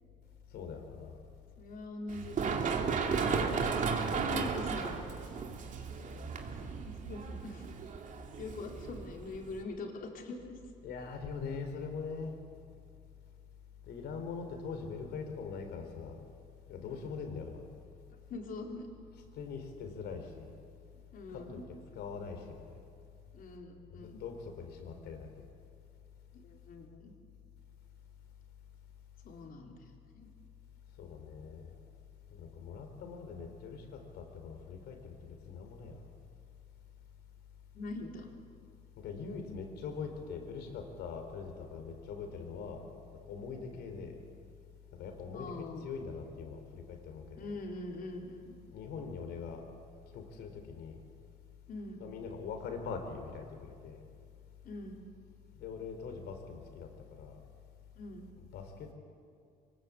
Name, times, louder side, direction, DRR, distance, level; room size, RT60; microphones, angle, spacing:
voice 1, 0.5-1.2 10.8-12.3 13.9-16.2 16.7-17.7 19.3-20.5 21.3-22.8 23.9-25.4 31.0-31.7 32.3-36.0 39.0-42.9 43.1-44.2 44.9-47.6 48.7-49.6 50.1-51.0 52.0-54.0 55.6-56.9 57.2-57.4 58.4-58.9, left 5 dB, 75° left, 5 dB, 4.0 m, -42 dB
voice 2, 1.6-2.8 3.2-3.6 4.0-5.1 7.0-7.7 8.4-10.6 16.9-17.2 18.3-18.9 21.1-21.7 23.3-24.2 26.3-27.1 29.2-29.7 30.1-30.3 37.7-38.3 43.7-43.8 45.3-45.8 47.4-48.5 51.7-52.1 54.6-55.0 58.0-58.3, left 2 dB, 55° left, 1 dB, 3.8 m, -43 dB
Run, 2.1-9.6, right 5 dB, 50° right, 2.5 m, -34 dB
24.0 x 19.0 x 8.5 m, 2.3 s
cardioid pair, 110°, 17 cm